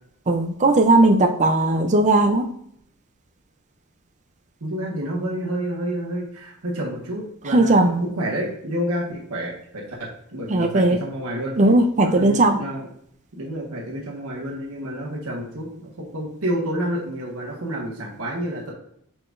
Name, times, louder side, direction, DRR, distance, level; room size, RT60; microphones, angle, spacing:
voice 1, 0.3-2.5 7.5-8.0 10.5-11.0 11.6-12.6, right 2 dB, 35° right, 5 dB, 0.5 m, -17 dB
voice 2, 4.6-11.5 12.0-12.9 13.4-18.7, right 1 dB, 85° right, -3 dB, 1.4 m, -29 dB
6.6 x 5.8 x 2.5 m, 0.69 s
head